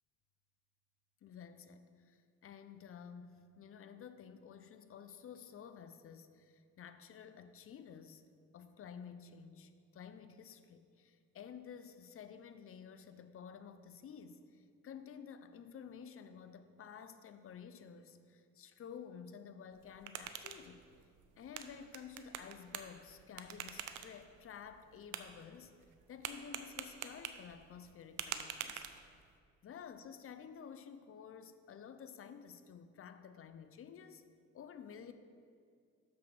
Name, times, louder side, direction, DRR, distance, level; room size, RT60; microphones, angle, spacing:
voice 1, 1.2-8.2 8.5-20.9 21.4-25.8 26.1-28.8 29.6-34.2 34.5-35.1, left 7 dB, 45° left, 11 dB, 0.6 m, -52 dB
sound 1, 19.7-29.4, right 9 dB, 90° right, 0.6 m, -48 dB
6.5 x 6.1 x 6.1 m, 2.2 s
cardioid pair, 90°, 30 cm